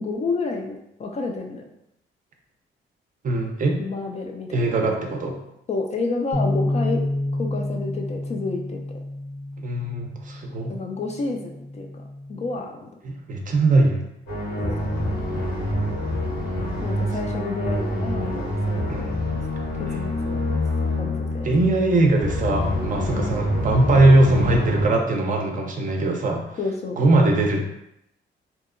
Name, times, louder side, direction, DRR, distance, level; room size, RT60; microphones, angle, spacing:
voice 1, 0.0-1.6 3.8-5.0 5.7-7.0 7.3-8.8 10.7-11.9 12.3-12.9 14.6-14.8 16.8-19.1 19.8-20.5 21.0-21.5 26.6-27.0, left 3 dB, 35° left, 2 dB, 0.3 m, -30 dB
voice 2, 3.2-3.8 4.5-5.4 9.6-10.7 13.0-14.0 18.9-19.1 19.9-20.0 21.4-26.6 27.0-27.7, right 2 dB, 40° right, 2 dB, 0.5 m, -20 dB
sound 1, 6.3-12.6, left 1 dB, 10° right, 0.7 m, -29 dB
sound 2, 14.3-24.9, left 1 dB, 80° left, 1.1 m, -26 dB
2.7 x 2.1 x 2.4 m, 0.81 s
cardioid pair, 90°, 20 cm